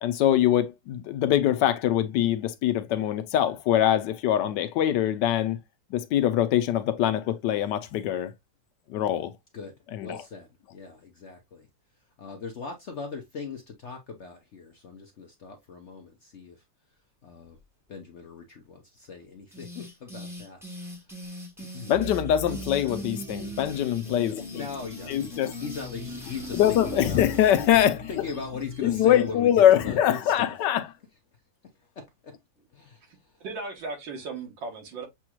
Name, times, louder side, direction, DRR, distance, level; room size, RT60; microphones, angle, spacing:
voice 1, 0.0-5.6 5.9-8.3 8.9-9.3 9.9-10.2 21.9-24.6 25.1-25.5 26.5-28.1 28.8-30.8, left 11 dB, 75° left, 1.2 m, -23 dB
voice 2, 9.5-11.7 12.2-16.6 17.2-17.6 17.9-20.6 21.6-21.9 24.5-27.2 28.1-30.5 32.0-32.3 32.7-33.0, left 5 dB, 60° left, 0.7 m, -39 dB
sound 1, 19.5-27.8, left 1 dB, ahead, 0.8 m, -40 dB
sound 2, 21.9-29.3, right 3 dB, 50° right, 1.1 m, -43 dB
voice 3, 33.0-35.1, right 3 dB, 80° right, 1.9 m, -37 dB
7.0 x 3.0 x 2.3 m
omnidirectional pair, 2.0 m